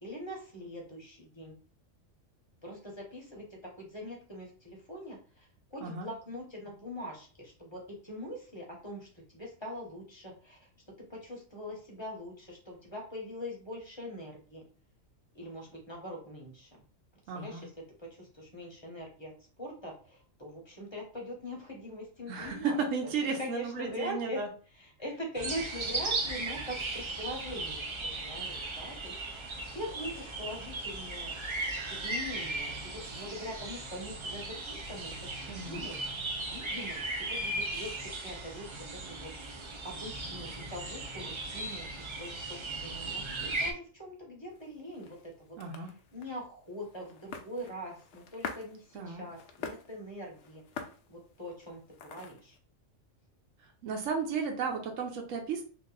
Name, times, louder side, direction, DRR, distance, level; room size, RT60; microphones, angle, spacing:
voice 1, 0.0-1.5 2.6-10.6 11.1-14.6 15.3-16.7 17.3-17.7 18.0-19.3 19.6-23.1 23.4-24.4 24.8-31.3 31.9-39.3 39.6-50.6 51.1-52.6, equal, 25° left, -2 dB, 1.0 m, -43 dB
voice 2, 17.3-17.6 22.3-24.5 35.5-35.8 45.6-45.9 48.9-49.2 53.6-55.6, right 5 dB, 85° right, 2 dB, 1.0 m, -34 dB
sound 1, 25.4-43.7, right 2 dB, 45° right, 0.4 m, -37 dB
sound 2, 44.5-52.6, left 5 dB, 70° left, 0.8 m, -47 dB
2.9 x 2.5 x 3.8 m, 0.39 s
omnidirectional pair, 1.3 m